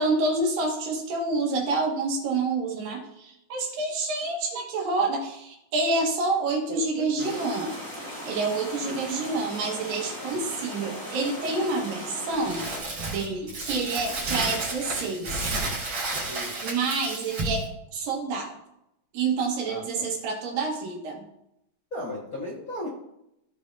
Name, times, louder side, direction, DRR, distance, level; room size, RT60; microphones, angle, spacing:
voice 1, 0.0-7.7 8.2-12.6 13.1-15.4 16.6-18.6 19.1-21.2, right 3 dB, 80° right, -1 dB, 3.3 m, -28 dB
voice 2, 6.7-7.4 8.8-9.0 16.3-16.5 19.6-20.1 21.9-22.9, left 1 dB, 40° left, -6 dB, 1.3 m, -36 dB
sound 1, 7.2-12.8, equal, 10° left, 1.0 m, -38 dB
Crumpling crinkling, 12.4-17.7, right 2 dB, 45° right, 3.5 m, -31 dB
15.5 x 5.3 x 2.8 m, 0.81 s
omnidirectional pair, 3.9 m